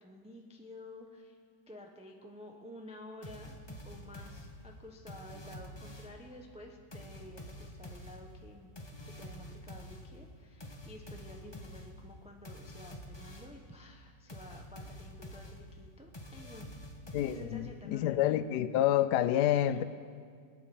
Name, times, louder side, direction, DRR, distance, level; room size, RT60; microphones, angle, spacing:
voice 1, 0.0-1.4 1.7-3.6 3.8-8.7 9.0-16.7 17.2-18.2 19.7-19.8, left 1 dB, 5° right, 2 dB, 0.6 m, -51 dB
sound 1, 3.2-6.3 6.9-13.7 14.3-17.8, left 1 dB, 15° left, 1.2 m, -48 dB
voice 2, 17.1-19.8, left 12 dB, 75° left, 13 dB, 1.1 m, -28 dB
22.0 x 8.7 x 7.1 m, 2.1 s
omnidirectional pair, 1.9 m